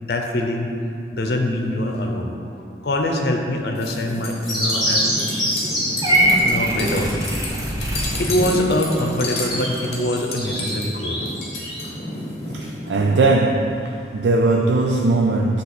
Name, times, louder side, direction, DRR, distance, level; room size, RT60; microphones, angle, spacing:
voice 1, 0.0-0.7 1.1-2.3 2.8-5.1 5.6-5.7 6.4-7.1 8.2-11.2, left 1 dB, 65° left, 3 dB, 0.7 m, -23 dB
sound 1, 3.8-13.2, left 1 dB, 35° left, 1.1 m, -30 dB
sound 2, 4.5-6.1 9.2-11.8, equal, ahead, 1.6 m, -25 dB
Purr / Meow, 6.0-8.2, right 1 dB, 20° right, 0.7 m, -21 dB
voice 2, 12.5-15.6, right 2 dB, 85° right, 1 dB, 0.4 m, -19 dB
7.7 x 3.0 x 5.9 m, 2.5 s
head